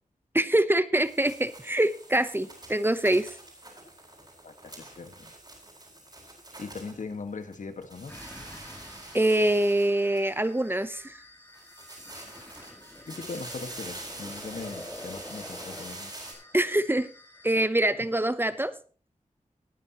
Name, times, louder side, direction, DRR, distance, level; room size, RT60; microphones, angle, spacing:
voice 1, 0.3-3.3 9.1-11.2 16.5-17.1 17.4-18.7, right 1 dB, 15° right, 13 dB, 0.9 m, -24 dB
sound 1, 1.0-7.6 7.8-10.6 11.5-16.3, right 2 dB, 30° right, 7.0 m, -45 dB
voice 2, 4.4-5.3 6.6-8.1 13.1-16.1, left 4 dB, 70° left, 8 dB, 1.8 m, -40 dB
sound 2, 8.1-17.5, left 1 dB, 15° left, 3.1 m, -48 dB
20.0 x 9.9 x 3.1 m, 0.39 s
wide cardioid pair, 85°, 13 cm